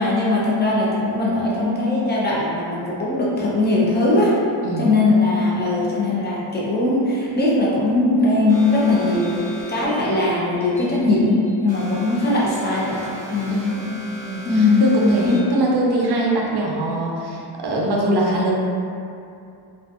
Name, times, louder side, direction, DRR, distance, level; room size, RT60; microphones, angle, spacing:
voice 1, 0.0-4.3 4.8-13.0 13.3-13.8 14.4-14.8 15.2-15.4, left 2 dB, 20° left, -6 dB, 0.5 m, -20 dB
sound 1, 8.5-15.6, equal, 5° right, 0.9 m, -37 dB
voice 2, 13.5-18.5, right 1 dB, 55° right, -3 dB, 0.5 m, -22 dB
2.5 x 2.4 x 2.3 m, 2.6 s
wide cardioid pair, 115°, 49 cm